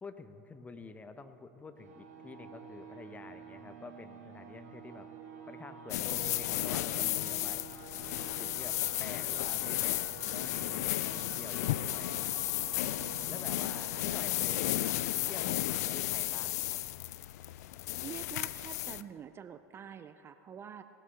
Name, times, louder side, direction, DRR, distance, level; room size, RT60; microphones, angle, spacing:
voice 1, 0.0-5.1 5.5-7.6 8.4-12.4 13.3-14.9 15.3-16.8, left 4 dB, 15° left, 10 dB, 0.8 m, -48 dB
sound 1, 1.8-17.1, right 5 dB, 65° right, 2.4 m, -50 dB
sound 2, 5.9-19.0, left 15 dB, 65° left, 0.4 m, -34 dB
voice 2, 13.1-13.8 18.0-20.8, right 8 dB, 25° right, 11 dB, 0.4 m, -47 dB
18.5 x 12.0 x 3.4 m, 2.8 s
hypercardioid pair, 90°, 9 cm